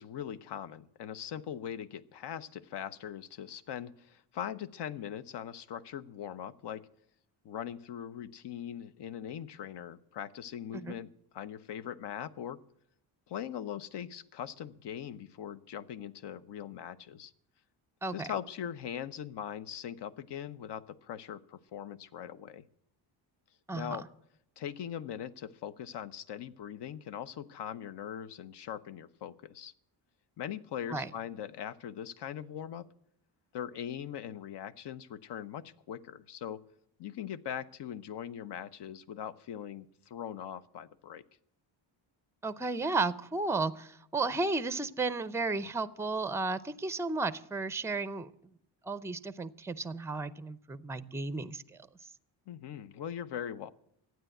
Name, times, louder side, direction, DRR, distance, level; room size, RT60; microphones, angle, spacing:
voice 1, 0.0-6.8 7.4-11.1 11.3-12.6 13.3-17.3 18.1-22.6 23.7-24.0 24.6-29.7 30.4-32.9 33.5-36.6 37.0-41.2 52.5-53.7, left 9 dB, 60° left, 15 dB, 0.8 m, -41 dB
voice 2, 23.7-24.0 30.9-31.1 42.4-48.3 48.8-51.8, right 3 dB, 5° right, 14 dB, 0.5 m, -33 dB
12.5 x 9.2 x 7.8 m, 0.76 s
cardioid pair, 100°, 47 cm